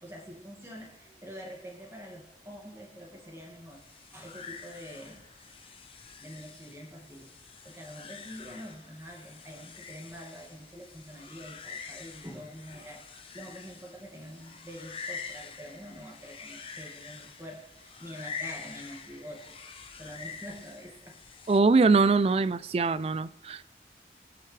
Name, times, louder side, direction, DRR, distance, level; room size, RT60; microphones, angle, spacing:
voice 1, 0.0-3.8 4.1-5.3 6.2-7.3 7.6-13.0 13.3-19.6 19.9-21.2, equal, 15° right, 2.0 m, -46 dB
sound 1, 3.7-21.6, left 5 dB, 30° left, 0.8 m, -46 dB
voice 2, 21.5-23.6, right 4 dB, 35° right, 0.3 m, -23 dB
22.5 x 8.9 x 3.3 m
head